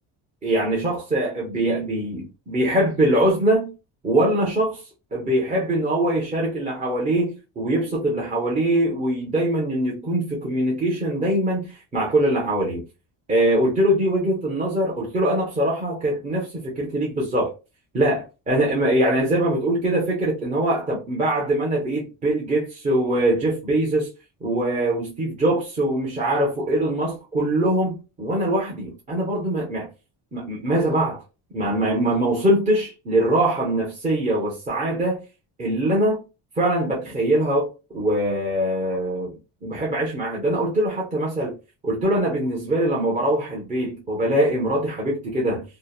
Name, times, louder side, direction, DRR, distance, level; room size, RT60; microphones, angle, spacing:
voice 1, 0.4-3.7 4.0-4.8 5.1-12.8 13.3-17.5 17.9-24.1 24.4-29.9 30.3-31.2 31.5-35.2 35.6-36.2 36.6-37.7 37.9-39.3 39.6-41.6 41.8-45.6, right 1 dB, 20° right, 0.5 m, -22 dB
2.7 x 2.0 x 2.3 m
cardioid pair, 155°, 40 cm